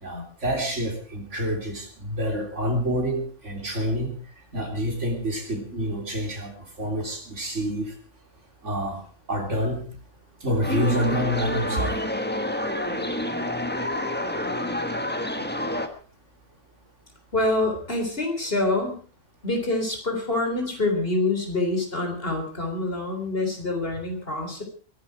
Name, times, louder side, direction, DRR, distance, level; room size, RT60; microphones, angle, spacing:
voice 1, 0.0-4.1 4.5-6.5 6.8-7.9 8.6-9.0 9.3-9.8 10.4-12.0, equal, 55° right, 2 dB, 3.9 m, -27 dB
sound 1, 10.6-15.9, left 1 dB, 10° left, 1.4 m, -28 dB
voice 2, 17.3-18.9 19.4-24.6, left 2 dB, 40° left, 3 dB, 3.9 m, -26 dB
22.5 x 11.5 x 4.8 m, 0.40 s
omnidirectional pair, 1.4 m